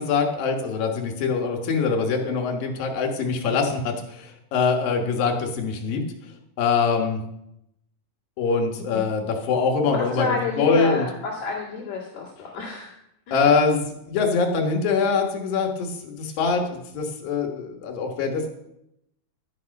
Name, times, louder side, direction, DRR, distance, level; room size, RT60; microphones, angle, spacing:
voice 1, 0.0-6.0 6.6-7.2 8.4-11.1 13.3-18.5, left 5 dB, 85° left, 3 dB, 3.4 m, -23 dB
voice 2, 10.0-12.9 13.3-13.5, left 4 dB, 55° left, -5 dB, 3.3 m, -29 dB
11.5 x 9.6 x 5.4 m, 0.78 s
omnidirectional pair, 3.9 m